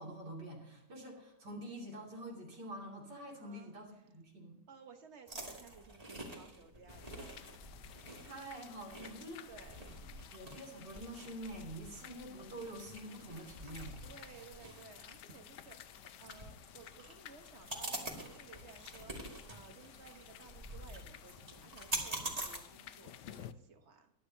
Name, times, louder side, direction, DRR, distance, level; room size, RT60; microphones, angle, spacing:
voice 1, 0.0-4.6 8.2-9.5 10.3-14.0, right 1 dB, 80° right, -2 dB, 3.5 m, -47 dB
voice 2, 3.4-3.8 4.7-7.6 9.5-9.9 14.0-24.1, right 5 dB, 45° right, 5 dB, 1.5 m, -57 dB
sound 1, 5.3-22.6, right 1 dB, 20° right, 2.2 m, -46 dB
sound 2, 6.9-23.5, left 11 dB, 80° left, 1.3 m, -54 dB
22.5 x 10.0 x 2.8 m, 0.86 s
omnidirectional pair, 1.8 m